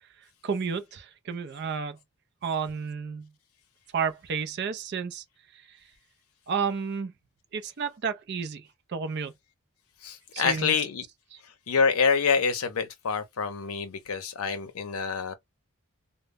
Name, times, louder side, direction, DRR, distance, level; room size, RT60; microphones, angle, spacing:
voice 1, 0.4-2.0 2.4-3.3 3.9-5.2 5.7-5.8 6.5-7.1 7.5-9.3 10.3-10.7, right 6 dB, 50° right, 0.4 m, -31 dB
voice 2, 10.0-11.0 11.7-15.3, left 5 dB, 75° left, 0.6 m, -26 dB
2.0 x 2.0 x 3.3 m
head